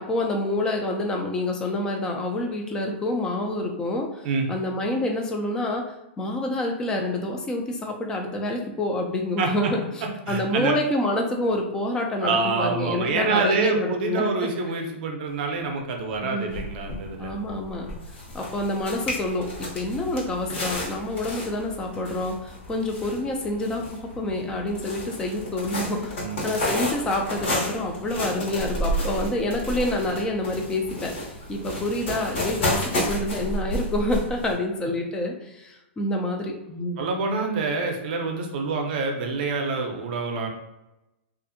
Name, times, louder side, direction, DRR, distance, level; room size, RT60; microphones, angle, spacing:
voice 1, 0.0-5.8 6.2-9.8 10.3-14.3 16.2-16.6 17.2-17.9 18.3-26.2 26.4-37.1, left 1 dB, 10° left, 2 dB, 0.3 m, -27 dB
voice 2, 9.4-9.7 10.3-10.7 12.2-17.3 26.2-26.5 31.7-31.8 37.0-40.5, right 4 dB, 50° right, 2 dB, 0.5 m, -26 dB
sound 1, 16.1-16.2 16.5-34.5, left 1 dB, 60° left, 1.1 m, -32 dB
2.6 x 2.4 x 2.5 m, 0.94 s
hypercardioid pair, 155°, 7 cm